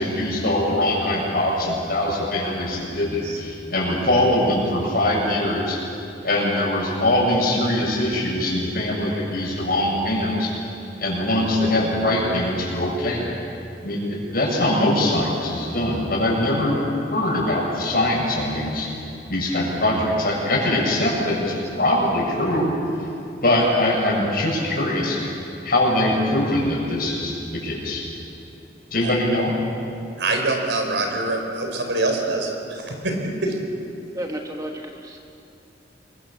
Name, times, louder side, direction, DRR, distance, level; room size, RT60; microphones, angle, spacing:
voice 1, 0.0-5.8 6.2-10.5 11.0-13.3 13.8-16.8 17.1-18.9 19.3-22.7 23.4-25.2 25.6-28.1 28.9-29.5, left 1 dB, 55° left, -2 dB, 7.2 m, -22 dB
voice 2, 30.2-33.6, right 2 dB, 75° right, 2 dB, 4.5 m, -25 dB
voice 3, 34.1-35.2, right 1 dB, 20° right, 2 dB, 1.3 m, -32 dB
28.0 x 22.5 x 7.3 m, 2.7 s
head